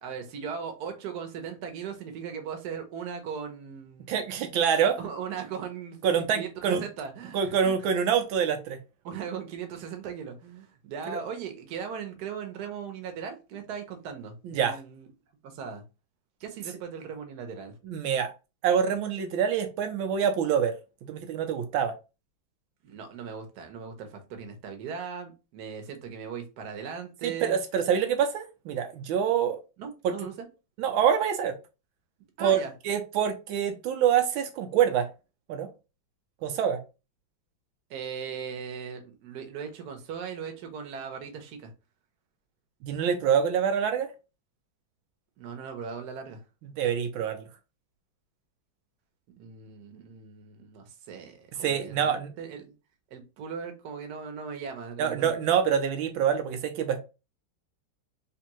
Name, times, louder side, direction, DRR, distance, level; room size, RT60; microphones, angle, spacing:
voice 1, 0.0-4.1 5.0-7.8 9.0-15.1 15.4-15.8 16.4-17.7 22.8-27.6 29.8-30.3 32.4-32.7 37.9-41.7 45.4-46.4 49.4-52.7 53.1-55.3, right 6 dB, 60° right, 5 dB, 1.3 m, -38 dB
voice 2, 4.1-5.0 6.0-6.8 7.3-8.8 11.1-11.2 14.4-14.8 17.8-18.3 18.6-20.7 21.0-21.9 27.2-29.6 30.0-30.1 30.8-31.6 32.4-35.1 35.5-35.7 36.4-36.8 42.8-44.1 46.8-47.4 51.6-52.3 55.0-57.0, right 8 dB, 85° right, 7 dB, 1.4 m, -26 dB
3.5 x 3.3 x 3.0 m, 0.29 s
omnidirectional pair, 2.2 m